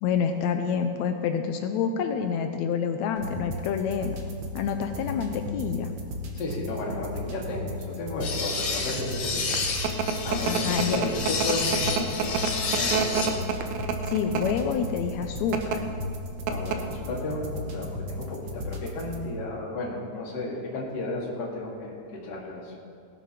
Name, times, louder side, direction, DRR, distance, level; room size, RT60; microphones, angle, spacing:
voice 1, 0.0-4.2 4.5-5.9 10.5-11.0 14.1-15.8, left 7 dB, 75° left, 6 dB, 1.8 m, -27 dB
sound 1, 3.2-19.2, left 1 dB, 55° right, 1.3 m, -36 dB
voice 2, 6.3-13.4 16.5-22.8, left 2 dB, 40° left, -3 dB, 2.3 m, -34 dB
sound 2, 8.2-13.3, left 4 dB, 60° left, 2.2 m, -30 dB
sound 3, 9.2-14.7 15.4-15.8 16.2-16.3 16.5-17.0, right 6 dB, 75° right, 2.1 m, -28 dB
17.5 x 7.1 x 5.8 m, 2.2 s
omnidirectional pair, 3.6 m